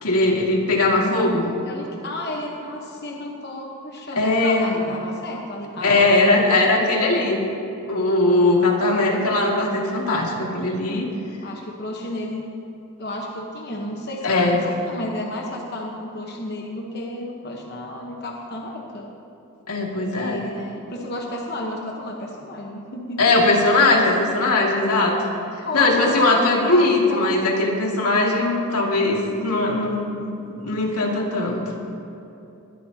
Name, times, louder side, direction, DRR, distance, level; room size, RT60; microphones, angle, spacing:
voice 1, 0.0-1.5 4.2-4.7 5.8-7.4 7.9-11.1 14.2-14.7 19.7-20.5 23.2-25.2 25.7-30.1 30.6-31.6, left 2 dB, 90° left, -1 dB, 2.3 m, -20 dB
voice 2, 0.9-7.4 11.4-12.4 13.0-19.1 20.1-23.7 24.4-24.6 25.6-27.3, left 1 dB, 45° left, -1 dB, 1.1 m, -32 dB
21.0 x 13.0 x 2.9 m, 2.9 s
head